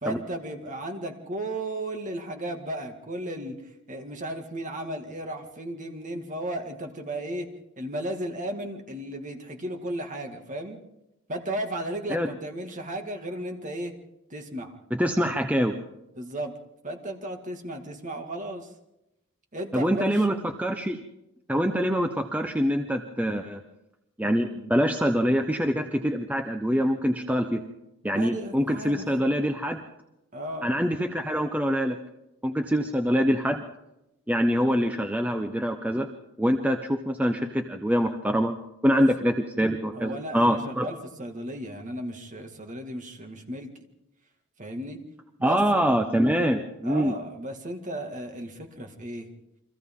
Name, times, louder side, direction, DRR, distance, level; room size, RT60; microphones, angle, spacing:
voice 1, 0.0-3.6 3.9-7.5 7.8-10.8 11.3-13.9 14.3-14.7 16.2-16.5 16.8-18.7 19.5-20.3 28.1-29.1 30.3-30.7 38.9-39.0 39.9-43.7 44.6-45.0 45.4-45.8 46.8-49.3, right 1 dB, 35° right, 4 dB, 2.1 m, -35 dB
voice 2, 14.9-15.8 19.7-21.0 21.5-23.6 24.2-27.6 28.0-29.8 30.6-32.0 32.4-33.6 34.3-36.1 36.4-38.5 38.8-40.9 45.4-47.1, equal, 5° right, 5 dB, 0.8 m, -25 dB
29.5 x 24.0 x 3.8 m, 0.91 s
head